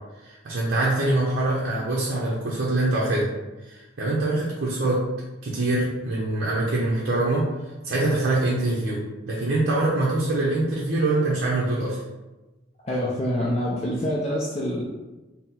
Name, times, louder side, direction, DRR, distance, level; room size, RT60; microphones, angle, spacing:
voice 1, 0.2-3.3 3.6-5.0 5.4-7.5 7.8-12.0, right 2 dB, 55° right, -5 dB, 0.6 m, -24 dB
voice 2, 12.8-14.8, equal, 30° left, -4 dB, 0.4 m, -26 dB
4.1 x 2.0 x 4.1 m, 1.1 s
head